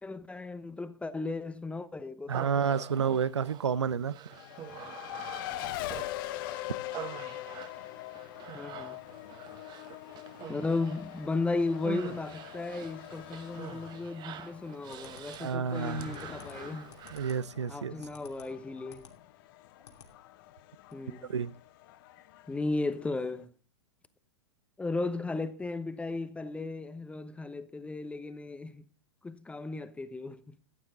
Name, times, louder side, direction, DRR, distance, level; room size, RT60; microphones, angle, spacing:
voice 1, 0.0-2.7 8.5-9.0 10.5-16.9 17.7-19.1 20.9-21.3 22.5-23.5 24.8-28.8 29.2-30.6, left 3 dB, 10° left, 0.9 m, -35 dB
Human voice, 2.3-17.5, right 10 dB, 30° right, 1.2 m, -46 dB
voice 2, 2.3-4.1 15.4-16.2 17.1-17.9 21.3-21.5, right 7 dB, 80° right, 0.6 m, -30 dB
Race car auto racing, 4.3-23.4, left 16 dB, 50° left, 1.0 m, -43 dB
sound 1, 14.9-19.2 19.5-20.1 20.5-20.6 20.8-20.9, left 5 dB, 70° left, 2.7 m, -54 dB
14.5 x 9.6 x 3.9 m
figure-of-eight pair, 105°, 15 cm